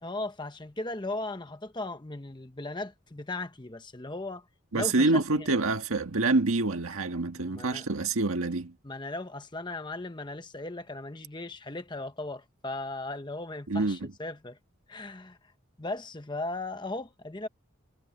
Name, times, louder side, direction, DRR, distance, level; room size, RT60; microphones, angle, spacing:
voice 1, 0.0-4.4 4.7-5.5 7.4-7.9 8.8-14.6 14.9-15.4 15.8-17.5, left 2 dB, 20° left, 1.0 m, -37 dB
voice 2, 4.7-8.7 13.7-14.1, right 3 dB, 80° right, 1.6 m, -26 dB
head